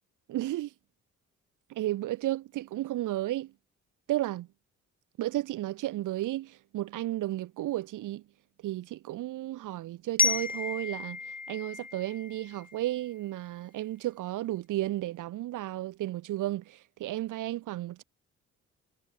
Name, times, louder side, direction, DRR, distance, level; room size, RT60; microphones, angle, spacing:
voice 1, 0.3-0.7 1.7-3.5 4.1-4.5 5.2-8.2 8.6-11.2 11.5-18.0, right 15 dB, 85° right, 4.6 m, -33 dB
Glockenspiel, 10.2-13.0, left 4 dB, 30° left, 3.6 m, -32 dB
cardioid pair, 90°, 30 cm